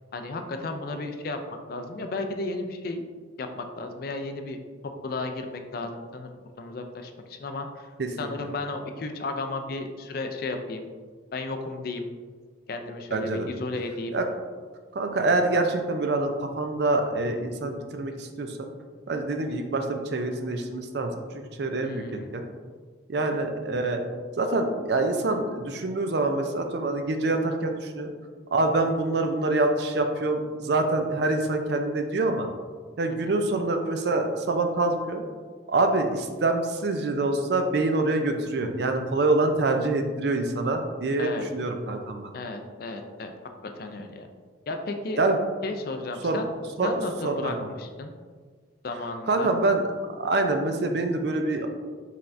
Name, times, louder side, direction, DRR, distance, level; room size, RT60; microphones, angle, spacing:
voice 1, 0.1-1.4 1.7-3.0 3.4-4.6 5.0-6.3 6.6-7.9 8.2-10.9 11.3-12.1 12.7-14.2 21.8-22.3 33.1-33.3 41.2-41.5 42.3-43.3 43.6-44.3 44.7-45.2 45.6-46.5 46.8-48.1 48.8-49.5, left 2 dB, 50° left, 5 dB, 0.4 m, -34 dB
voice 2, 13.1-13.5 14.1-14.2 14.9-18.6 19.1-22.0 22.3-22.4 23.1-24.0 24.4-28.1 28.5-32.5 33.0-35.2 35.7-42.3 45.2-45.4 46.2-46.4 46.8-46.9 47.2-47.5 49.3-49.8 50.2-51.7, right 2 dB, 60° right, 5 dB, 0.4 m, -25 dB
5.5 x 3.4 x 2.6 m, 1.6 s
head